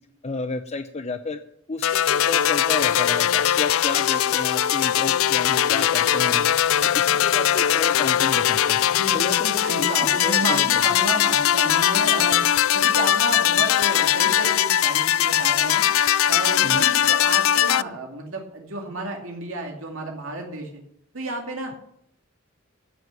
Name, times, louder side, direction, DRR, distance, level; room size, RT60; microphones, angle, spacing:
voice 1, 0.2-1.4 1.7-6.5 6.8-8.8 9.1-10.8 16.6-16.9, left 3 dB, 30° left, 8 dB, 0.6 m, -31 dB
sound 1, 1.8-17.8, left 11 dB, 75° left, 0.4 m, -20 dB
voice 2, 8.8-12.5 12.7-15.8 16.3-20.8 21.1-21.7, right 2 dB, 70° right, 1 dB, 2.5 m, -32 dB
15.0 x 6.2 x 7.5 m, 0.73 s
head